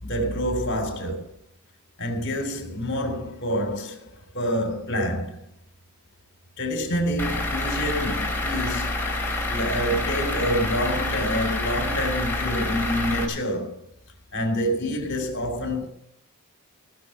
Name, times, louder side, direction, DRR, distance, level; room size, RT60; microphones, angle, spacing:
voice 1, 0.0-1.3 2.0-5.4 6.6-9.0 9.5-13.8 14.3-15.9, equal, 55° left, 3.5 m, -27 dB
Truck / Idling, 7.2-13.2, left 2 dB, 10° left, 3.0 m, -27 dB
18.0 x 6.7 x 7.8 m
head